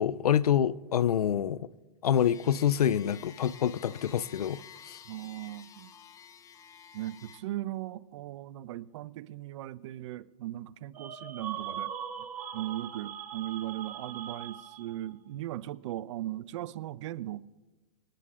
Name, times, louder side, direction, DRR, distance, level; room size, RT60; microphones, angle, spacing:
voice 1, 0.0-1.7 2.0-5.0, left 9 dB, 85° left, 0.4 m, -27 dB
sound 1, 2.1-7.4, left 7 dB, 15° left, 0.7 m, -51 dB
voice 2, 5.0-5.9 6.9-11.9 12.2-12.3 12.5-17.4, right 14 dB, 50° right, 0.5 m, -38 dB
sound 2, 10.9-15.1, right 9 dB, 75° right, 1.0 m, -40 dB
27.0 x 9.8 x 2.4 m
hypercardioid pair, 120°, 19 cm